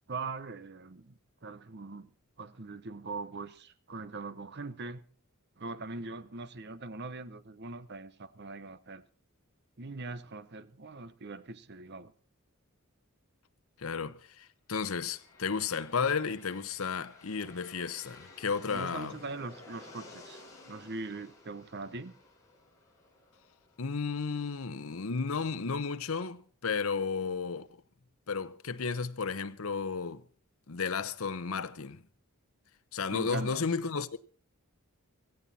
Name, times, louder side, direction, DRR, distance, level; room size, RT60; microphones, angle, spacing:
voice 1, 0.1-2.1 2.4-5.0 5.6-9.0 9.8-12.1 18.7-22.1 33.1-33.6, right 3 dB, 50° right, 0.9 m, -41 dB
voice 2, 13.8-19.2 23.8-27.8 28.3-30.2 30.7-32.0 32.9-34.2, left 5 dB, 75° left, 0.8 m, -33 dB
sound 1, 14.8-24.6, left 3 dB, 15° left, 4.9 m, -54 dB
16.5 x 15.0 x 4.2 m
head